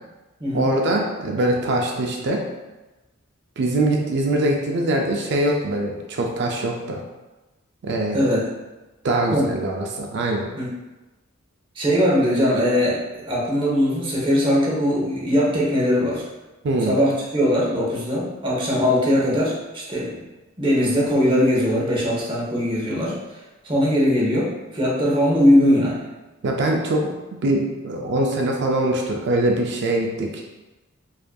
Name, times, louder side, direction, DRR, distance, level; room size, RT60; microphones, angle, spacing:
voice 1, 0.5-2.4 3.6-7.0 7.8-8.2 9.0-10.5 16.6-17.0 26.4-27.1 27.4-30.4, right 1 dB, 55° right, 1 dB, 0.4 m, -23 dB
voice 2, 11.8-16.2 16.9-20.2 20.6-23.2 23.6-26.0, equal, 25° right, -5 dB, 0.9 m, -20 dB
4.8 x 2.6 x 2.2 m, 1.1 s
head